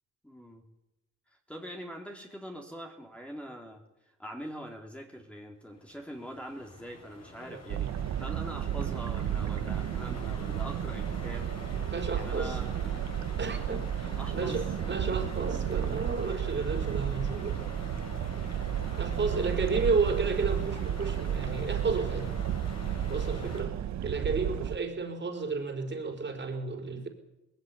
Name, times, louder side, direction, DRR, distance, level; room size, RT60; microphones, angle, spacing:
voice 1, 0.2-0.6 1.3-7.9 8.2-11.8 12.1-13.1 14.2-14.6 19.2-19.8 23.7-24.0, equal, 5° left, 1 dB, 3.6 m, -44 dB
sound 1, 5.7-23.6, left 3 dB, 60° left, 7.9 m, -45 dB
sound 2, 7.7-24.8, right 10 dB, 65° right, 1.0 m, -32 dB
voice 2, 11.9-12.6 13.4-17.6 19.0-22.3 23.1-23.8 24.0-27.1, right 4 dB, 35° right, 4 dB, 4.8 m, -32 dB
19.5 x 15.5 x 9.7 m, 0.92 s
cardioid pair, 90°, 30 cm